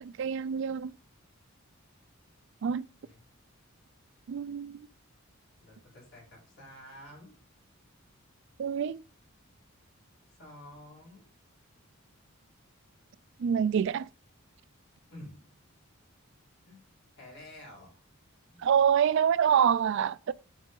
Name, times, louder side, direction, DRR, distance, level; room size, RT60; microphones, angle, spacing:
voice 1, 0.0-0.9 2.6-2.9 4.3-4.9 8.6-9.0 13.4-14.1 18.6-20.3, right 8 dB, 55° right, 0.3 m, -26 dB
voice 2, 5.6-7.4 10.3-11.2 15.1-15.5 16.6-16.8 17.2-17.9 18.5-18.6, left 1 dB, 55° left, 4.0 m, -50 dB
7.2 x 6.4 x 3.9 m
head